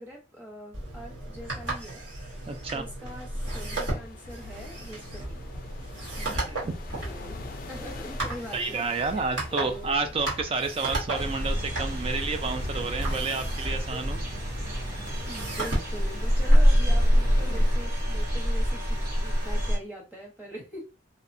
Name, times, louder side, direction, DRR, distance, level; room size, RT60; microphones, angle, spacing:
voice 1, 0.0-5.5 6.2-6.7 6.9-7.4 7.7-10.1 13.9-14.0 15.3-20.8, equal, 10° right, -1 dB, 0.8 m, -43 dB
sound 1, 0.7-17.7, right 1 dB, 70° right, 1.1 m, -36 dB
voice 2, 2.5-2.8 6.3-6.8 8.5-14.2, right 4 dB, 30° right, 6 dB, 0.3 m, -30 dB
sound 2, 3.4-17.7, left 2 dB, 45° left, 0.3 m, -45 dB
sound 3, 11.1-19.8, equal, 50° right, 0.8 m, -25 dB
2.7 x 2.1 x 2.5 m, 0.30 s
head